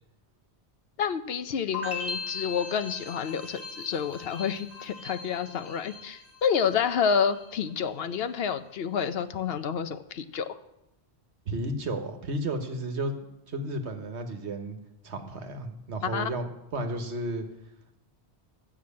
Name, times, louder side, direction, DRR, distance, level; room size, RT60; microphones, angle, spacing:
voice 1, 1.0-10.6 16.1-16.3, left 7 dB, 65° left, 11 dB, 0.9 m, -29 dB
sound 1, 1.7-6.8 7.1-7.7, left 4 dB, 15° left, 2.0 m, -39 dB
voice 2, 11.5-13.1 13.5-14.8 15.0-17.4, right 1 dB, 75° right, 6 dB, 1.5 m, -33 dB
12.0 x 6.1 x 8.5 m, 0.88 s
omnidirectional pair, 1.1 m